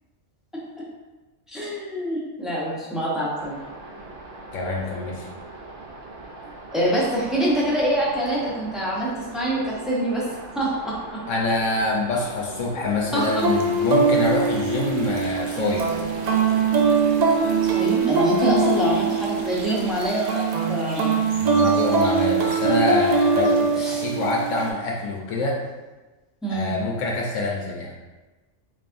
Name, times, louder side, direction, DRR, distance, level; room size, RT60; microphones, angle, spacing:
voice 1, 1.5-3.6 6.7-11.2 13.1-13.4 17.6-21.2 23.8-24.0 26.4-26.7, right 1 dB, ahead, -6 dB, 0.6 m, -25 dB
sound 1, 3.4-20.1, right 3 dB, 65° right, 0.9 m, -40 dB
voice 2, 4.5-5.3 11.3-15.9 21.4-25.6 26.5-28.0, left 2 dB, 75° left, -2 dB, 1.0 m, -25 dB
sound 2, 13.1-24.7, right 4 dB, 85° right, 0.3 m, -22 dB
4.1 x 3.3 x 2.5 m, 1.2 s
omnidirectional pair, 1.3 m